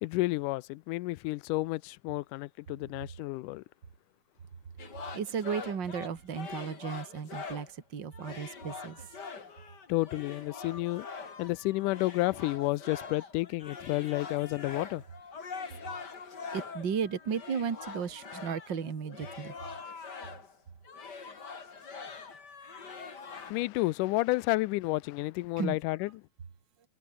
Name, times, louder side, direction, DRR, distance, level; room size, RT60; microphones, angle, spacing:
voice 1, 0.0-3.6 9.9-11.1 11.4-15.0 23.3-26.1, left 20 dB, 85° left, 2.1 m, -31 dB
sound 1, 4.8-7.8 8.1-20.6 20.8-23.5, left 5 dB, 35° left, 2.9 m, -44 dB
voice 2, 5.1-9.1 16.5-19.5 21.3-21.4 25.6-25.8, right 7 dB, 35° right, 2.7 m, -34 dB
omnidirectional pair, 3.7 m